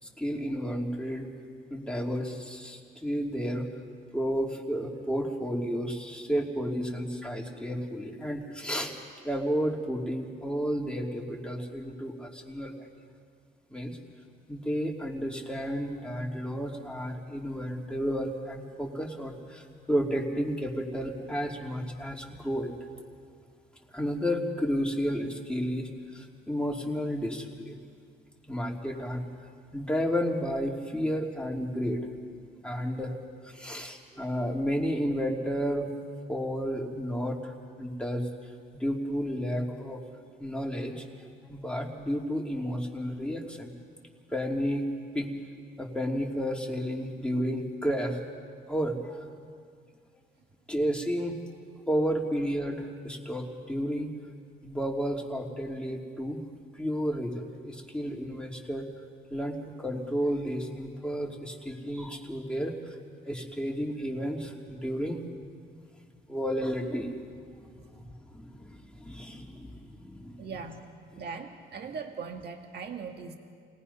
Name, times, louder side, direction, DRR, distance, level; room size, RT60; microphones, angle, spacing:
voice 1, 0.0-1.3 1.7-3.7 4.1-8.9 9.2-12.9 13.7-14.0 14.5-22.8 23.9-27.8 28.5-29.2 29.7-32.0 32.6-33.1 33.4-35.9 36.3-40.0 40.4-41.0 41.5-43.7 44.3-44.8 45.1-45.3 45.8-48.2 48.7-49.2 50.7-51.4 51.7-54.1 54.6-56.4 56.7-58.9 59.3-63.0 63.2-65.5 66.3-70.5 71.1-71.2, equal, 5° left, -1 dB, 2.8 m, -32 dB
voice 2, 70.4-70.8 71.2-73.4, right 5 dB, 55° right, 4 dB, 1.8 m, -39 dB
29.0 x 18.5 x 5.6 m, 2.1 s
cardioid pair, 90°, 20 cm